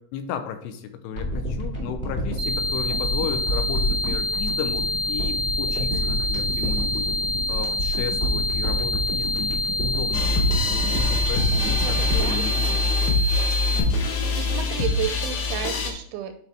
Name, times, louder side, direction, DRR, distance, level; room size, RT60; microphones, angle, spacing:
voice 1, 0.0-7.1 7.5-9.6 9.9-12.7, left 8 dB, 85° left, 7 dB, 2.6 m, -34 dB
sound 1, 1.1-13.6 13.9-14.0, equal, 25° left, 1.0 m, -29 dB
sound 2, 2.4-13.8, left 1 dB, 60° right, 0.7 m, -27 dB
voice 2, 5.7-6.2 11.8-12.8 14.4-16.4, right 10 dB, 85° right, 6 dB, 3.0 m, -33 dB
sound 3, 10.1-15.9, left 3 dB, 65° left, 2.4 m, -24 dB
9.3 x 4.8 x 3.4 m, 0.65 s
omnidirectional pair, 5.4 m